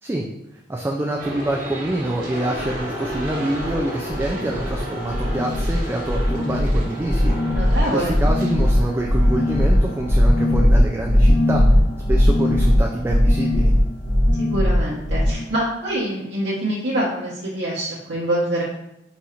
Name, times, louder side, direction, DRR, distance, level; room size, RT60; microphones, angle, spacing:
voice 1, 0.7-11.6 12.1-13.7, right 1 dB, 15° right, -1 dB, 0.3 m, -26 dB
sound 1, 1.2-8.7, right 1 dB, 50° right, 1.1 m, -33 dB
sound 2, 2.3-16.4, left 1 dB, 30° left, 1.1 m, -40 dB
sound 3, 2.5-2.8 3.1-3.8 4.1-4.8 5.0-15.3, left 1 dB, 50° left, 0.9 m, -18 dB
voice 2, 7.5-8.2 14.4-18.6, right 1 dB, 70° right, -7 dB, 0.9 m, -25 dB
4.1 x 2.5 x 4.3 m, 0.87 s
head